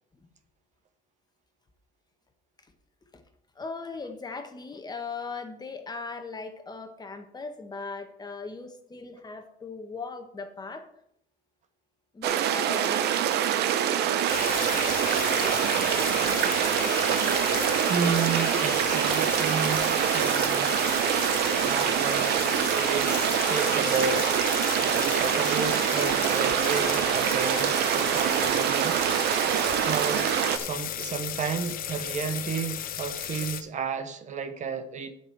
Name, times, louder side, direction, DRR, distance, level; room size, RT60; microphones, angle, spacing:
voice 1, 3.6-10.8 12.1-13.1, left 4 dB, 25° left, 1.4 m, -38 dB
sound 1, 12.2-30.6, right 10 dB, 75° right, 0.8 m, -25 dB
sound 2, 14.3-33.6, left 10 dB, 60° left, 0.9 m, -34 dB
voice 2, 17.9-20.7 21.6-24.3 24.8-29.3 29.9-35.1, right 5 dB, 45° right, 0.9 m, -32 dB
7.9 x 5.7 x 7.5 m
cardioid pair, 110°, 17 cm